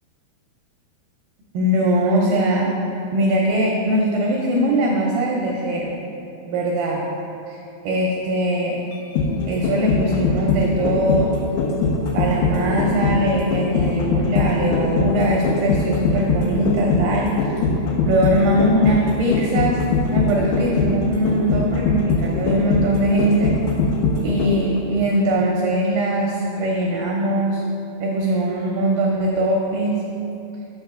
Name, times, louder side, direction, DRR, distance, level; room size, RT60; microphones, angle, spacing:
voice 1, 1.5-2.7 3.1-5.9 6.5-7.0 7.5-8.8 9.5-11.3 12.1-17.3 18.0-19.8 20.1-23.5 24.2-27.6 28.0-30.0, right 1 dB, 80° right, -2 dB, 2.1 m, -21 dB
sound 1, 8.9-24.8 25.1-25.2, left 4 dB, 80° left, 2.3 m, -21 dB
7.0 x 5.6 x 3.6 m, 2.7 s
omnidirectional pair, 4.6 m